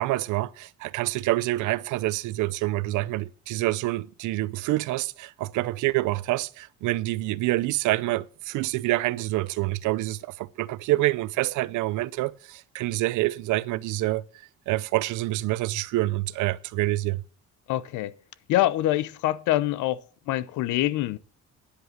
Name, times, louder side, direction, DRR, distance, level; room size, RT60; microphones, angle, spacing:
voice 1, 0.0-14.2 14.7-17.2, right 18 dB, 85° right, 0.7 m, -27 dB
voice 2, 17.7-18.1 18.5-20.0 20.3-21.2, left 15 dB, 80° left, 0.8 m, -25 dB
10.0 x 8.2 x 7.3 m
cardioid pair, 165°, 30 cm